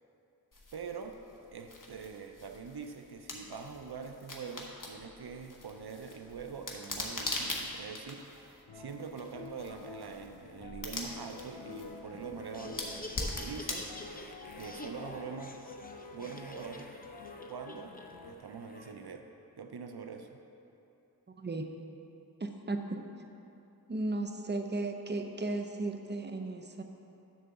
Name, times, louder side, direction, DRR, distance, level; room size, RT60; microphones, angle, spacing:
sound 1, 0.5-15.1, left 2 dB, 55° left, 1.1 m, -43 dB
voice 1, 0.7-1.2 1.5-13.9 14.5-15.6 16.1-16.9 17.5-18.0 18.3-19.3 19.6-20.3, right 5 dB, 85° right, 5 dB, 0.6 m, -44 dB
sound 2, 8.7-18.4, left 3 dB, 80° left, 0.6 m, -49 dB
Laughter, 12.4-18.9, left 2 dB, 25° left, 0.6 m, -48 dB
voice 2, 21.4-21.7 22.4-23.0 23.9-26.8, right 2 dB, 30° right, 5 dB, 0.6 m, -35 dB
10.0 x 3.9 x 7.0 m, 2.8 s
wide cardioid pair, 45°, 38 cm